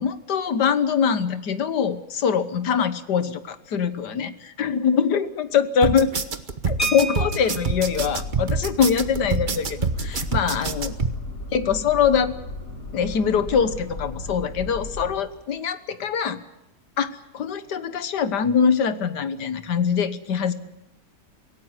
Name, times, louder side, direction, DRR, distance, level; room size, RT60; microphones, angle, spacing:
voice 1, 0.0-6.2 6.7-10.9 11.5-12.4 12.9-16.4 17.0-20.5, left 7 dB, 90° left, 12 dB, 1.8 m, -23 dB
sound 1, 5.8-11.1, right 4 dB, 35° right, 1.1 m, -26 dB
sound 2, 6.8-7.9 9.3-9.4 9.8-10.0 10.4-10.6, equal, 20° left, 1.3 m, -31 dB
sound 3, 7.7-15.2, left 2 dB, 60° left, 3.5 m, -35 dB
24.5 x 17.0 x 9.7 m, 0.94 s
omnidirectional pair, 1.7 m